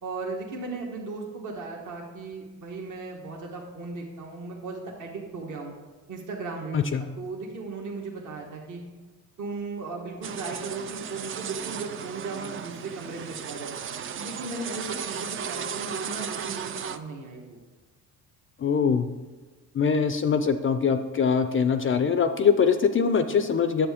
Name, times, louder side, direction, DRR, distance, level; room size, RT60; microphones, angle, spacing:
voice 1, 0.0-5.7 6.1-8.8 9.4-13.7 14.2-17.6, right 3 dB, 50° right, 0 dB, 1.3 m, -36 dB
sound 1, 10.2-17.0, right 7 dB, 35° right, 0.4 m, -35 dB
voice 2, 18.6-19.1 19.7-23.9, left 6 dB, 35° left, 9 dB, 0.4 m, -23 dB
8.6 x 7.4 x 3.5 m, 1.2 s
cardioid pair, 105°, 38 cm